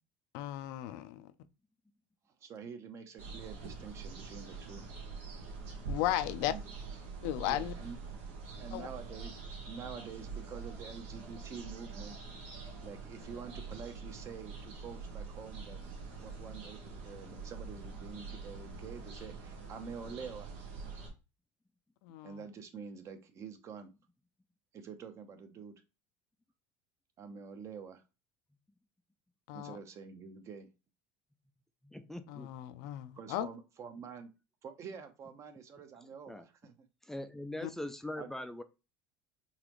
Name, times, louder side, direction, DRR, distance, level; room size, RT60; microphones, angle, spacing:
voice 1, 0.3-1.3 5.9-6.5 7.2-7.7 8.7-8.9 22.0-22.4 29.5-29.8 32.3-33.5 37.6-37.7, left 14 dB, 75° left, 0.4 m, -35 dB
voice 2, 2.4-4.8 6.4-6.6 7.5-8.0 8.6-9.3 9.7-12.1 12.4-15.8 16.2-20.6 22.2-23.9 24.7-25.8 27.2-28.0 29.5-30.7 33.2-34.3 34.6-36.7 38.2-38.3, right 6 dB, 40° right, 0.7 m, -47 dB
sound 1, 3.2-21.1, right 4 dB, 85° right, 1.2 m, -45 dB
voice 3, 31.8-32.5 36.3-36.5 37.0-38.6, left 1 dB, 5° left, 0.3 m, -41 dB
4.0 x 2.9 x 3.0 m
supercardioid pair, 110°, 7 cm